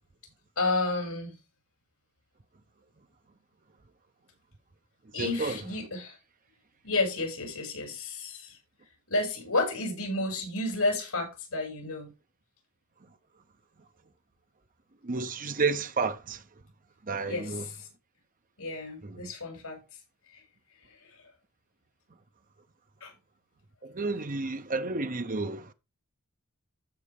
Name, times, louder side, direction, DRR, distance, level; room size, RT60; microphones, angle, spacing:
voice 1, 0.6-1.4 5.1-6.2 6.8-8.6 9.1-12.1 17.2-17.9 18.6-19.8 20.3-20.4 23.0-23.1, left 2 dB, 75° left, 6.3 m, -31 dB
voice 2, 5.2-5.5 15.1-16.4 17.1-17.6 24.0-25.6, right 4 dB, 40° right, 0.8 m, -30 dB
14.5 x 5.3 x 3.6 m
head